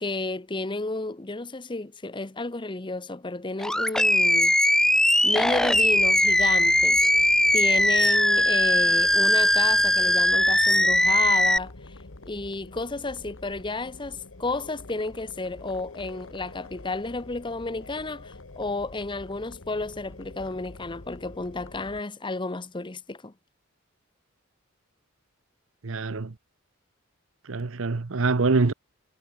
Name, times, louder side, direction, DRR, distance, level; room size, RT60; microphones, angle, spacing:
voice 1, 0.0-4.5 5.2-11.9 12.3-23.3, left 3 dB, 25° left, 0.9 m, -32 dB
Animal, 3.6-11.6, left 1 dB, 5° left, 0.5 m, -20 dB
sound 1, 5.4-22.0, left 2 dB, 70° left, 1.4 m, -46 dB
voice 2, 25.8-26.3 27.5-28.7, right 3 dB, 75° right, 0.8 m, -24 dB
head